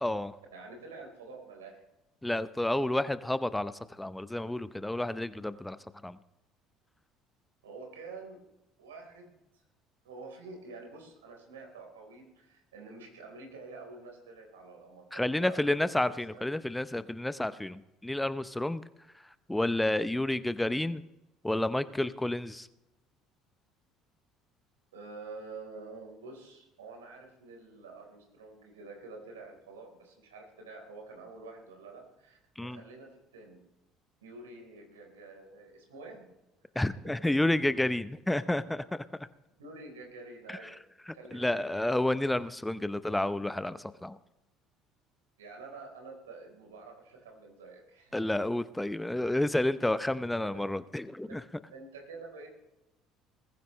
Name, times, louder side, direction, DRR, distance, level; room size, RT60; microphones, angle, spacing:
voice 1, 0.0-0.4 2.2-5.8 6.0-6.2 15.1-18.8 19.5-21.0 21.4-22.7 32.6-32.8 36.8-39.0 40.5-40.7 41.1-44.2 48.1-51.4, left 1 dB, 10° left, 14 dB, 0.7 m, -30 dB
voice 2, 0.5-1.8 7.6-8.4 8.8-9.6 10.0-16.6 24.9-33.6 34.2-36.3 36.8-37.0 37.8-37.9 39.6-40.8 41.1-41.7 45.4-48.2 50.4-50.6 51.3-51.4 51.7-52.5, right 3 dB, 85° right, 2 dB, 3.9 m, -48 dB
21.0 x 15.0 x 3.2 m, 0.95 s
hypercardioid pair, 65°, 0 cm